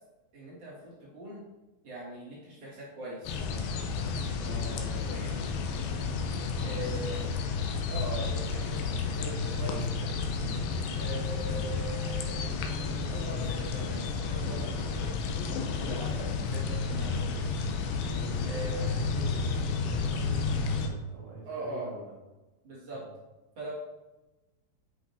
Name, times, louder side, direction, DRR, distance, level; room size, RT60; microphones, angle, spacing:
voice 1, 0.3-1.4 1.8-3.4 5.0-5.4 6.6-7.3 7.9-10.2 10.9-15.1 15.7-17.5 18.5-19.0 21.5-21.9 22.6-23.0 23.6-23.7, right 2 dB, 45° right, -7 dB, 2.7 m, -41 dB
sound 1, 3.3-20.9, left 4 dB, 85° left, 2.6 m, -31 dB
voice 2, 4.4-5.2 6.3-7.3 10.6-11.2 15.9-16.3 18.1-22.1 22.9-23.1, right 2 dB, 75° right, -4 dB, 3.3 m, -46 dB
8.1 x 5.9 x 2.8 m, 1.1 s
omnidirectional pair, 4.3 m